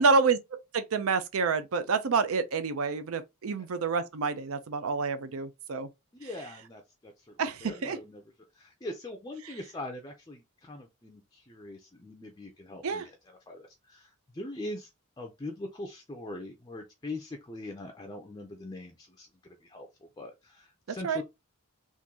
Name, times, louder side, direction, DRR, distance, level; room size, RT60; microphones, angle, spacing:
voice 1, 0.0-5.9 7.4-8.0 12.8-13.1 20.9-21.2, right 4 dB, 65° right, 0.5 m, -28 dB
voice 2, 6.1-8.2 8.5-13.2 13.5-14.9 15.2-19.9 20.2-21.2, left 2 dB, 20° left, 0.5 m, -42 dB
3.8 x 2.6 x 2.8 m
head